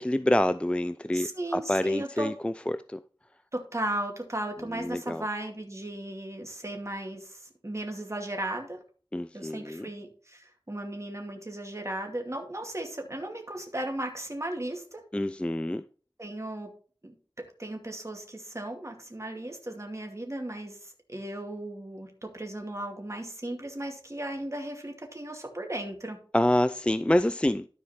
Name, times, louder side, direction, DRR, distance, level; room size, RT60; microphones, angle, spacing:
voice 1, 0.0-3.0 4.7-5.2 9.1-9.9 15.1-15.9 26.3-27.7, left 1 dB, 10° left, 0.4 m, -27 dB
voice 2, 1.1-2.3 3.5-8.8 9.3-15.0 16.2-16.7 17.0-17.1 17.6-26.2, right 1 dB, 35° right, 2.3 m, -36 dB
13.0 x 4.7 x 4.3 m
wide cardioid pair, 40°, 9 cm